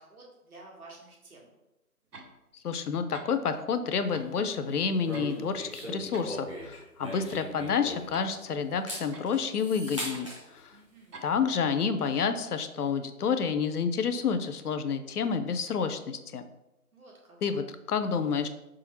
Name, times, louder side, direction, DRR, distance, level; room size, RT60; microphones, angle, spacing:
voice 1, 0.0-1.5 10.7-11.2 16.9-17.4, right 2 dB, 70° right, -2 dB, 1.6 m, -51 dB
sound 1, 2.1-2.3 2.8-2.9 3.1-3.3 4.1-4.4 4.7-5.4 5.7-6.3 6.6-6.7 7.1-7.3 8.1-8.4 9.1-9.3 10.1-10.3 11.1-11.3, right 3 dB, 85° right, 0.9 m, -47 dB
voice 2, 2.6-10.7 11.2-16.4 17.4-18.5, left 6 dB, 75° left, 9 dB, 0.6 m, -29 dB
sound 2, 5.0-8.3 8.7-10.4, equal, 20° right, 0.7 m, -39 dB
4.7 x 3.7 x 2.9 m, 0.96 s
figure-of-eight pair, 165°, 45 cm